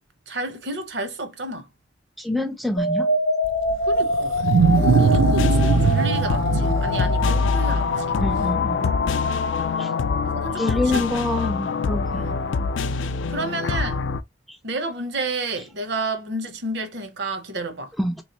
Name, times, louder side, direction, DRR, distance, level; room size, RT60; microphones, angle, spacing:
voice 1, 0.3-1.7 3.8-4.4 5.0-8.2 10.2-11.2 12.1-12.4 13.3-14.0 14.6-17.9, right 2 dB, 60° right, 0.8 m, -31 dB
voice 2, 2.2-3.1 8.2-8.9 9.8-9.9 10.6-12.3 14.5-14.6 18.0-18.2, left 1 dB, ahead, 0.3 m, -26 dB
sound 1, 2.8-12.8, left 2 dB, 60° left, 0.8 m, -27 dB
Wild animals, 3.4-8.5, right 6 dB, 90° right, 0.4 m, -22 dB
sound 2, 4.6-14.2, left 4 dB, 80° left, 0.4 m, -24 dB
3.3 x 3.1 x 2.9 m
head